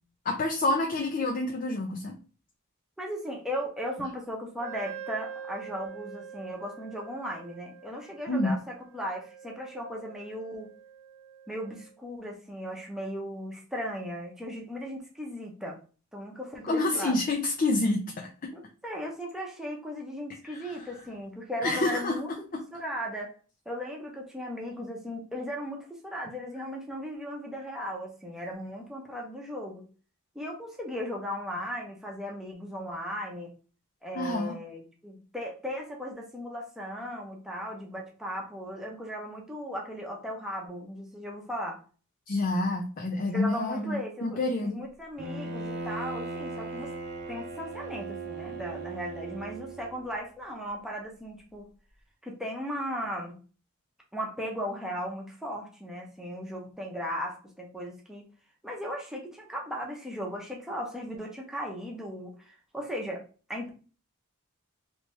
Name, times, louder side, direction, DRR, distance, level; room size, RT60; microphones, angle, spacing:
voice 1, 0.2-2.2 8.3-8.6 16.7-18.5 20.5-20.6 21.6-22.1 22.5-22.6 34.1-34.5 42.3-44.8, left 2 dB, 40° left, 1 dB, 0.5 m, -28 dB
voice 2, 3.0-10.7 11.5-15.8 16.1-17.2 18.8-22.3 22.7-23.3 23.6-29.9 30.3-33.5 34.0-41.8 43.2-46.9 47.3-51.7 52.2-53.3 54.1-58.3 58.6-63.2 63.5-63.7, equal, ahead, -2 dB, 0.8 m, -37 dB
Wind instrument woodwind instrument, 4.6-11.9, right 8 dB, 35° right, 0.9 m, -45 dB
Bowed string instrument, 45.2-50.0, right 3 dB, 55° right, 0.7 m, -38 dB
3.2 x 2.8 x 3.1 m, 0.38 s
head